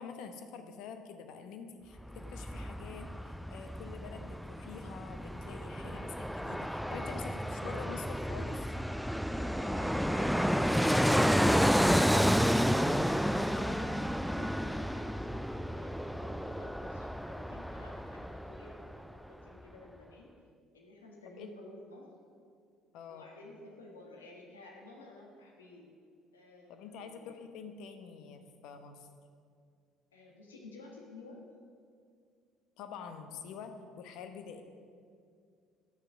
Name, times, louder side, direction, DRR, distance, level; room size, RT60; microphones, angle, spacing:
voice 1, 0.0-8.7 13.5-14.0 21.4-21.6 22.9-23.3 26.7-29.1 32.8-34.6, left 6 dB, 65° left, 7 dB, 0.9 m, -47 dB
Fixed-wing aircraft airplane, 2.0-18.9 19.2-19.3, equal, ahead, 0.3 m, -31 dB
voice 2, 9.3-20.3 20.7-22.1 23.1-25.9 26.3-27.4 30.1-31.4, left 2 dB, 90° left, -1 dB, 1.4 m, -53 dB
11.5 x 6.7 x 6.2 m, 2.2 s
hypercardioid pair, 60°, 0 cm